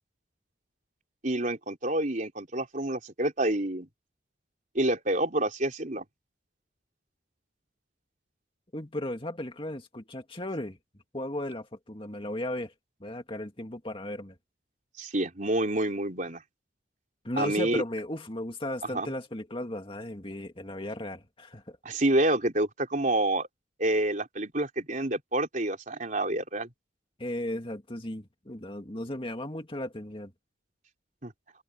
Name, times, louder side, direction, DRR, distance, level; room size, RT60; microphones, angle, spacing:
voice 1, 1.2-3.9 4.7-6.0 15.0-16.4 17.4-17.8 18.9-19.1 21.8-23.5 23.8-26.7 31.2-31.3, right 1 dB, 40° right, 4.0 m, -28 dB
voice 2, 8.7-10.8 11.1-12.7 13.0-14.3 17.2-21.8 27.2-30.3, left 1 dB, 25° left, 2.3 m, -35 dB
head